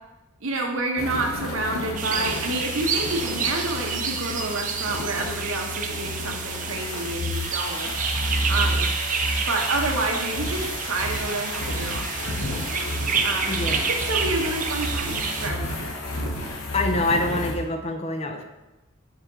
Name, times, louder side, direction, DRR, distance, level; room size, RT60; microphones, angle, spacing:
voice 1, 0.4-7.9 8.5-8.9 9.5-12.3 12.7-12.9 13.2-13.6 13.9-16.3, right 2 dB, 75° right, 2 dB, 0.9 m, -29 dB
sound 1, 1.0-17.5, left 1 dB, 80° left, 1.0 m, -31 dB
sound 2, 2.0-15.5, right 6 dB, 40° right, 0.5 m, -29 dB
voice 2, 13.5-13.9 16.7-18.4, left 2 dB, 30° left, 5 dB, 0.5 m, -26 dB
5.6 x 4.3 x 4.0 m, 1.0 s
head